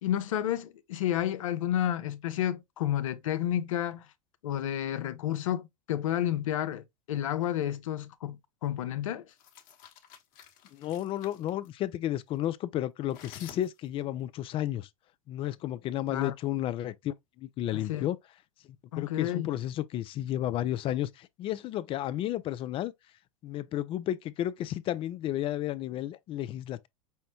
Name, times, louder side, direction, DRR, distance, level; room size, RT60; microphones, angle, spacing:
voice 1, 0.0-4.1 4.4-9.3 16.1-16.3 17.7-18.1 18.9-19.5, left 11 dB, 75° left, 0.6 m, -31 dB
sound 1, 9.3-11.7 13.1-14.0, left 9 dB, 55° left, 1.2 m, -51 dB
voice 2, 10.7-14.9 15.3-18.2 19.0-22.9 23.4-26.9, left 13 dB, 30° left, 0.3 m, -32 dB
5.5 x 2.1 x 2.9 m
hypercardioid pair, 95°, 17 cm